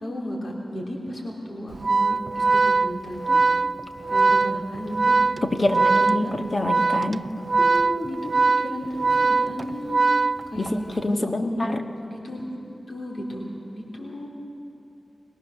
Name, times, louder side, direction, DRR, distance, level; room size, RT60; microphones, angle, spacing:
voice 1, 0.0-3.4 4.1-5.1 5.5-6.3 7.6-8.2 8.6-10.0 10.5-10.7 11.1-11.6 12.1-12.4 12.9-13.5 13.7-14.3, equal, 65° left, -2 dB, 3.2 m, -33 dB
Organ, 1.7-10.9, right 4 dB, 55° right, 0.4 m, -21 dB
voice 2, 5.4-7.2 10.6-11.8, left 2 dB, 45° left, 5 dB, 1.4 m, -26 dB
21.5 x 19.0 x 6.5 m, 2.8 s
wide cardioid pair, 65°, 0 cm